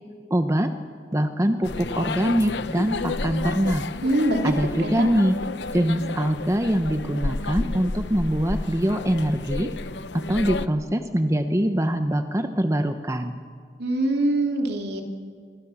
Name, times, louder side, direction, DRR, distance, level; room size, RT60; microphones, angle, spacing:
voice 1, 0.3-0.7 1.1-3.8 4.4-5.4 5.7-9.7 10.1-13.4, equal, 15° right, 7 dB, 1.0 m, -23 dB
sound 1, 1.6-10.7, left 3 dB, 75° left, 0.8 m, -31 dB
voice 2, 4.0-4.5 4.8-5.1 13.8-15.0, right 1 dB, 65° right, 3 dB, 3.1 m, -23 dB
26.5 x 23.5 x 7.2 m, 2.1 s
head